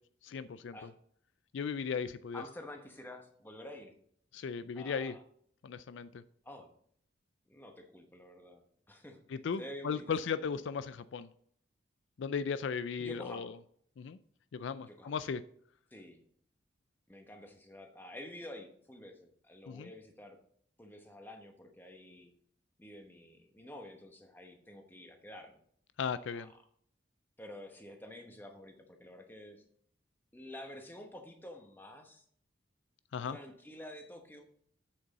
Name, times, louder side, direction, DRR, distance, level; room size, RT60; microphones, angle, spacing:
voice 1, 0.2-0.8 1.5-2.4 4.3-5.1 5.6-6.2 9.3-11.3 12.2-13.5 14.0-14.2 14.5-15.4 19.7-19.9 26.0-26.5 33.1-33.4, left 6 dB, 70° left, 14 dB, 0.4 m, -36 dB
voice 2, 2.3-3.9 4.8-5.2 6.4-6.8 7.5-9.2 9.6-10.0 10.3-10.5 13.0-13.5 14.9-15.1 15.9-16.2 17.1-20.4 20.8-22.3 22.8-25.6 26.3-26.6 27.4-29.6 30.3-32.2 33.3-34.5, left 1 dB, 10° left, 4 dB, 1.0 m, -49 dB
8.0 x 6.7 x 4.0 m, 0.63 s
head